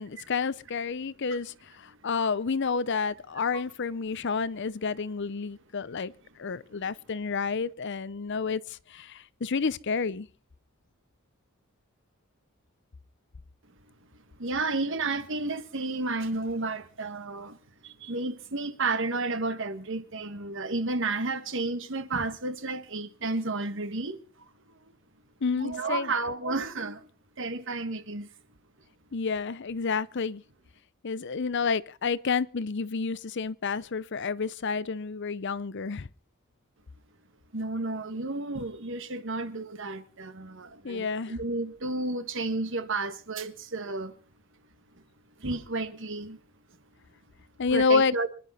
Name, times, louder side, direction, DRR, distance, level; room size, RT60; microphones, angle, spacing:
voice 1, 0.0-6.1 6.4-10.3 25.4-26.1 29.1-30.4 31.0-36.1 40.8-41.3 47.6-48.1, left 5 dB, 55° left, 0.6 m, -29 dB
voice 2, 14.4-17.6 17.8-24.5 25.6-27.1 27.4-28.3 37.5-44.1 45.4-46.4 47.7-48.3, right 3 dB, 60° right, 1.4 m, -32 dB
25.5 x 11.0 x 4.2 m
head